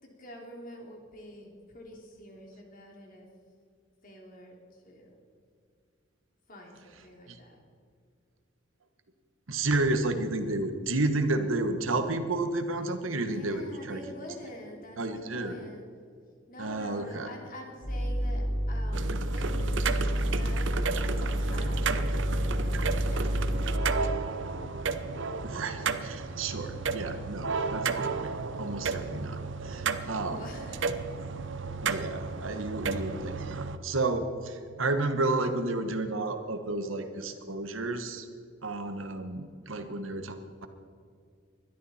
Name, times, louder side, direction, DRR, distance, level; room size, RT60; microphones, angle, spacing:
voice 1, 0.0-3.3 4.0-5.2 6.5-7.6 13.0-15.8 16.5-22.8 23.1-23.3 23.6-24.4 30.3-30.9, equal, 45° left, 1 dB, 3.0 m, -47 dB
voice 2, 9.5-14.0 15.0-15.6 16.6-17.3 25.4-28.3 28.6-30.5 31.8-38.3 38.6-40.7, right 2 dB, 85° right, 8 dB, 1.3 m, -31 dB
sound 1, 17.8-24.1, equal, 15° left, 4.0 m, -29 dB
sound 2, 18.9-33.8, right 4 dB, 65° right, 0.7 m, -33 dB
21.0 x 12.5 x 4.3 m, 2.2 s
head